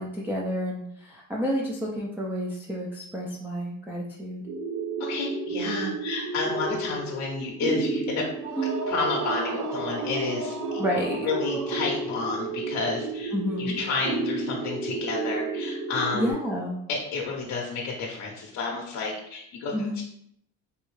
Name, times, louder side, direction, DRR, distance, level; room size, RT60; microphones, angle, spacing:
voice 1, 0.0-4.4 8.6-8.8 10.8-11.3 13.3-13.9 16.1-16.8 19.7-20.0, equal, 5° right, -3 dB, 0.3 m, -30 dB
sound 1, 4.4-16.3, right 3 dB, 85° right, 0.9 m, -32 dB
voice 2, 5.0-8.2 8.9-10.8 11.2-16.3 16.9-20.1, left 4 dB, 55° left, -1 dB, 0.7 m, -31 dB
sound 2, 8.4-12.3, right 3 dB, 60° right, 0.6 m, -36 dB
3.3 x 2.6 x 3.1 m, 0.73 s
cardioid pair, 130°, 32 cm